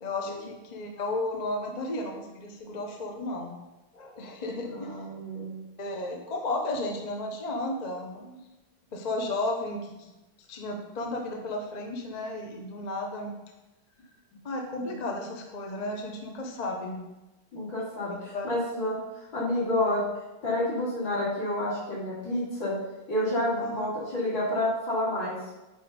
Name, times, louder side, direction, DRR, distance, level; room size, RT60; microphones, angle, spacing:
voice 1, 0.0-3.5 3.9-5.0 5.8-8.2 8.9-10.1 10.5-13.3 14.4-17.0 18.1-18.5 23.6-23.9, left 2 dB, 35° left, 2 dB, 0.6 m, -33 dB
voice 2, 4.6-5.6 8.2-8.3 14.9-15.0 17.5-19.0 19.3-20.0 20.4-22.7 23.1-25.4, left 1 dB, 70° left, -7 dB, 3.8 m, -29 dB
9.4 x 4.3 x 5.1 m, 1.0 s
omnidirectional pair, 2.2 m